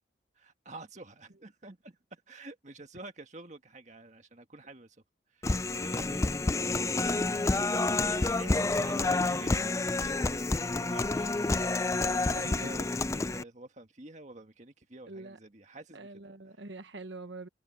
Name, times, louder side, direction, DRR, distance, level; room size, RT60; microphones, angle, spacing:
voice 1, 0.3-5.0 5.3-16.2, right 2 dB, 40° right, 1.7 m, -49 dB
Human voice, 5.4-13.4, left 3 dB, 15° left, 0.3 m, -29 dB
voice 2, 8.4-9.5 12.0-12.7 15.1-15.4 15.9-17.5, right 2 dB, 70° right, 1.3 m, -45 dB
head